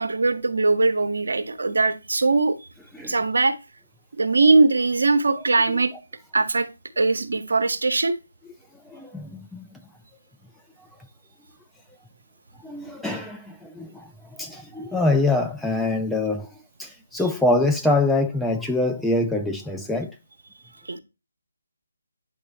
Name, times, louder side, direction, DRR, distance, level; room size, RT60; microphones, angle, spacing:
voice 1, 0.0-2.6 3.0-3.6 4.2-5.9 6.3-6.7 7.0-8.2 20.9-21.0, right 3 dB, 65° right, 0.8 m, -20 dB
voice 2, 8.9-9.8 12.6-14.1 14.4-16.5 16.8-20.1, left 2 dB, ahead, 0.3 m, -24 dB
8.5 x 3.8 x 3.2 m
figure-of-eight pair, 150°, 0 cm